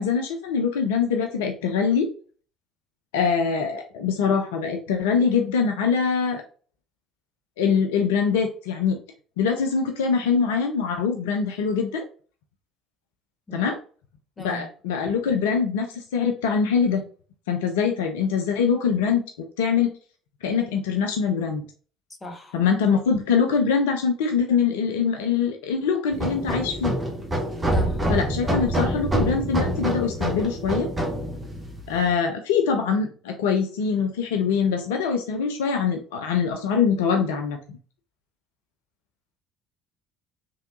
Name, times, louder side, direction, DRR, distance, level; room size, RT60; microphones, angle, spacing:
voice 1, 0.0-2.1 3.1-6.4 7.6-9.0 9.4-12.0 13.5-13.8 14.4-17.1 17.5-19.2 19.6-19.9 20.4-21.6 22.5-27.0 28.1-30.9 31.9-37.8, left 6 dB, 70° left, 0.4 m, -23 dB
voice 2, 14.4-14.7 22.2-22.6 27.7-28.0, equal, 25° left, 0.8 m, -37 dB
sound 1, 26.1-32.1, right 1 dB, 20° right, 1.0 m, -26 dB
3.2 x 2.6 x 2.5 m
figure-of-eight pair, 55°, 0 cm